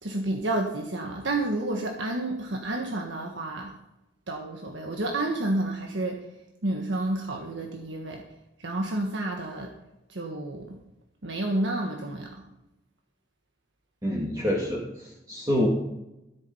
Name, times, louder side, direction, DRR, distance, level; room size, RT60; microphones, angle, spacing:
voice 1, 0.0-3.7 4.3-6.2 6.6-8.2 8.6-9.7 10.1-10.7 11.2-12.3, right 2 dB, 75° right, 2 dB, 1.4 m, -30 dB
voice 2, 14.0-15.7, left 1 dB, 20° right, -4 dB, 2.1 m, -27 dB
13.5 x 8.6 x 5.6 m, 0.92 s
head